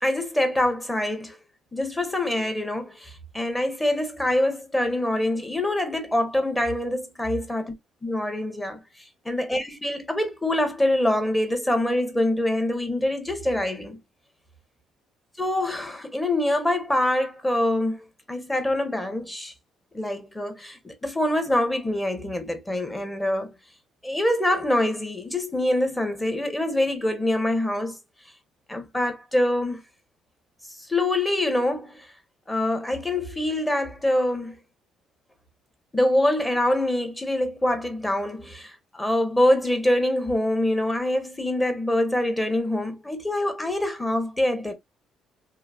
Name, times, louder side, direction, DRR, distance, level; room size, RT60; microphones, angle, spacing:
voice 1, 0.0-1.3 1.7-7.6 8.0-8.8 9.2-14.0 15.4-18.0 18.3-19.5 19.9-23.5 24.0-28.0 28.7-29.8 30.9-32.1 32.5-34.6 35.9-44.7, left 1 dB, 10° left, 1.0 m, -25 dB
3.0 x 2.6 x 2.5 m
supercardioid pair, 75°, 0 cm